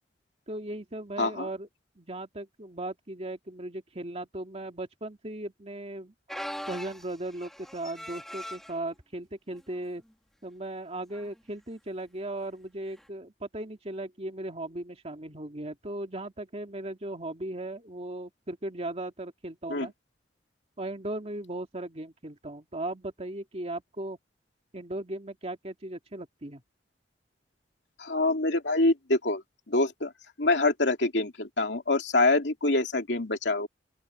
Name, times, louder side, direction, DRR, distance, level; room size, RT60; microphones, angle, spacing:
voice 1, 0.5-1.7 2.0-6.1 6.7-10.0 10.4-19.9 20.8-24.2 24.7-26.6, right 1 dB, 35° right, 2.4 m, -37 dB
voice 2, 1.2-1.5 19.7-19.9 28.0-29.4 29.7-30.1 30.4-33.7, left 2 dB, 70° left, 3.0 m, -25 dB
sound 1, 6.3-8.8 9.5-9.8 10.1-10.2 11.1-11.4 13.0-13.1, equal, ahead, 1.8 m, -40 dB
open air
head